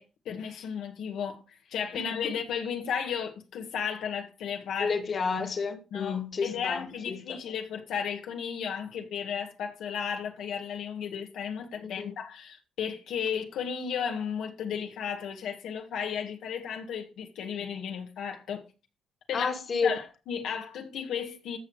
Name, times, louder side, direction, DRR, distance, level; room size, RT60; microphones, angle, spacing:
voice 1, 0.0-4.9 5.9-18.6 19.3-19.5 19.8-21.6, left 7 dB, 80° left, 1.8 m, -34 dB
voice 2, 1.9-2.3 4.8-7.4 11.8-12.1 19.3-20.0, left 5 dB, 45° left, 2.1 m, -31 dB
14.5 x 6.1 x 4.9 m
cardioid pair, 90°, 0 cm